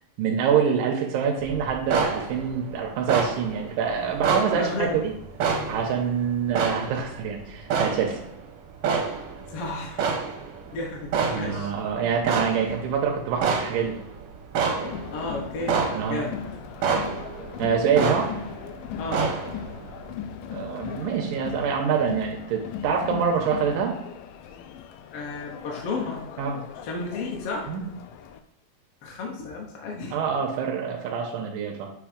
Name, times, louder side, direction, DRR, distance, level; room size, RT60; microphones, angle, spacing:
voice 1, 0.2-5.1 5.7-8.2 11.3-13.9 15.9-16.3 17.6-18.3 20.5-24.0 26.4-26.6 27.7-27.8 30.1-31.9, right 7 dB, 85° right, 1 dB, 2.4 m, -26 dB
sound 1, 1.4-8.6 8.8-20.1, right 5 dB, 70° right, 1.4 m, -29 dB
voice 2, 4.5-5.0 5.5-5.8 9.5-10.2 10.7-11.7 12.6-12.7 15.1-15.8 16.1-16.4 19.0-19.3 25.1-26.2 26.8-27.7 29.0-30.1, left 3 dB, 65° left, -1 dB, 1.4 m, -33 dB
Crowd, 14.8-28.4, left 8 dB, 90° left, 2.2 m, -38 dB
8.2 x 3.1 x 5.0 m, 0.77 s
omnidirectional pair, 3.7 m